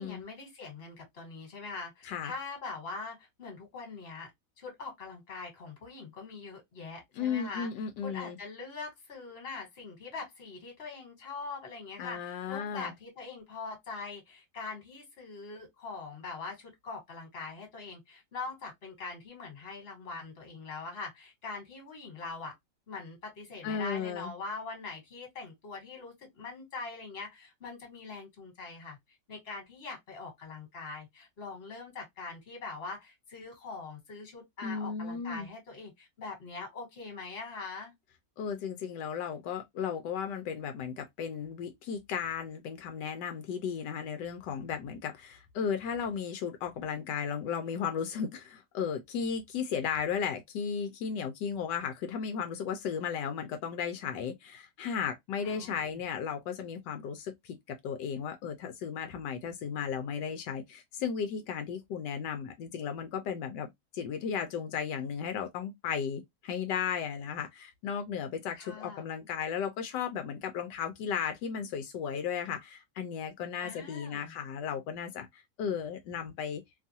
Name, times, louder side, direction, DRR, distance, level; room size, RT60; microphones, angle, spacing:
voice 1, 0.0-4.3 4.6-7.7 8.0-22.5 22.9-29.0 29.3-37.9 55.4-56.0 68.6-69.1 73.6-74.3, left 4 dB, 40° left, 1.5 m, -43 dB
voice 2, 7.2-8.4 12.0-12.9 23.6-24.3 34.6-35.5 38.4-63.7 63.9-76.6, left 7 dB, 85° left, 1.2 m, -35 dB
3.0 x 2.4 x 2.6 m
omnidirectional pair, 1.8 m